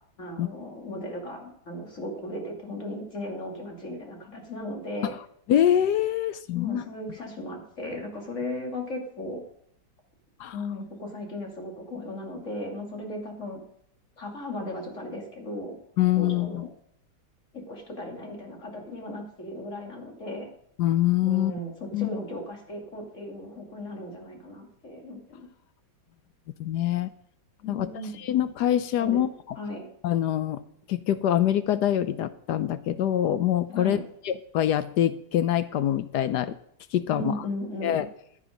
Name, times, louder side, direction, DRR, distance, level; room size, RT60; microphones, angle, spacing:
voice 1, 0.2-5.1 6.5-9.4 10.5-13.6 14.2-15.8 16.1-16.7 17.5-20.5 21.2-25.5 27.6-28.2 29.0-29.2 29.6-29.9 33.7-34.0 37.1-38.1, left 1 dB, 40° left, 1 dB, 3.1 m, -36 dB
voice 2, 5.5-6.8 10.4-10.6 16.0-16.7 20.8-21.5 21.9-22.1 26.6-27.1 27.7-27.9 28.2-29.6 30.0-30.6 30.9-34.0 34.2-36.6 36.9-37.3 37.8-38.1, left 11 dB, 70° left, 13 dB, 1.1 m, -24 dB
15.0 x 9.0 x 5.3 m, 0.68 s
omnidirectional pair, 2.0 m